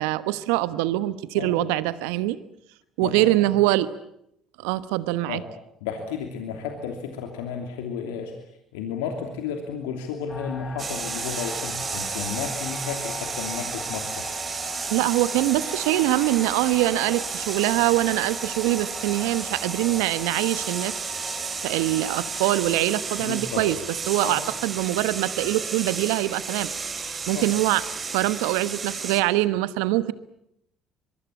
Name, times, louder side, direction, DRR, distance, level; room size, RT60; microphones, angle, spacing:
voice 1, 0.0-2.4 3.0-3.9 4.6-5.4 14.9-20.9 21.6-23.8 24.1-26.7 27.1-27.8 28.1-30.1, right 16 dB, 75° right, 16 dB, 1.1 m, -23 dB
voice 2, 3.0-3.5 5.3-5.4 5.8-8.3 8.7-14.3 23.2-23.7 24.2-24.4 27.2-27.5, left 6 dB, 80° left, 3 dB, 2.9 m, -33 dB
sound 1, 10.3-24.7, left 3 dB, 30° left, 5.9 m, -41 dB
sound 2, 10.8-29.2, right 5 dB, 35° right, 3.5 m, -32 dB
24.5 x 23.0 x 8.5 m, 0.78 s
hypercardioid pair, 60°, 0 cm